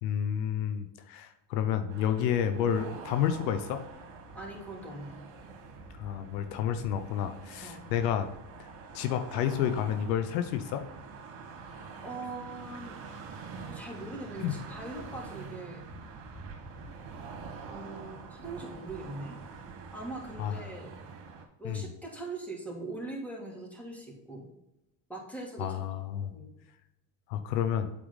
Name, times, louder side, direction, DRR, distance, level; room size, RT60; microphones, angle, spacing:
voice 1, 0.0-3.8 6.0-8.3 8.6-8.7 8.9-10.8 14.4-14.5 20.4-20.6 21.6-21.8 25.6-26.3 27.3-27.9, left 9 dB, 90° left, 8 dB, 0.8 m, -30 dB
sound 1, 1.9-21.4, right 4 dB, 70° right, 2.0 m, -45 dB
voice 2, 4.3-5.2 7.6-7.9 12.0-12.9 13.7-15.9 17.6-19.3 19.9-20.9 21.6-24.5 25.1-25.8 26.3-26.5, right 2 dB, 5° left, -2 dB, 2.8 m, -41 dB
8.3 x 4.7 x 4.0 m, 0.92 s
supercardioid pair, 85°, 49 cm